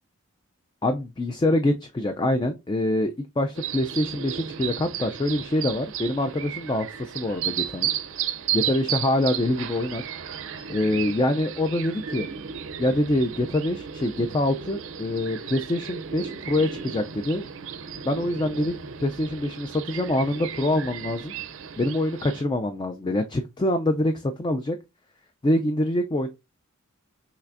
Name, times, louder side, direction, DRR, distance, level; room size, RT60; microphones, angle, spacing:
voice 1, 0.8-7.9 8.5-10.0 10.7-12.3 12.8-17.5 18.0-21.3 21.8-24.8 25.4-26.3, left 1 dB, 20° left, 0.3 m, -25 dB
sound 1, 3.5-22.4, right 9 dB, 60° right, 0.5 m, -34 dB
5.8 x 3.3 x 2.5 m
head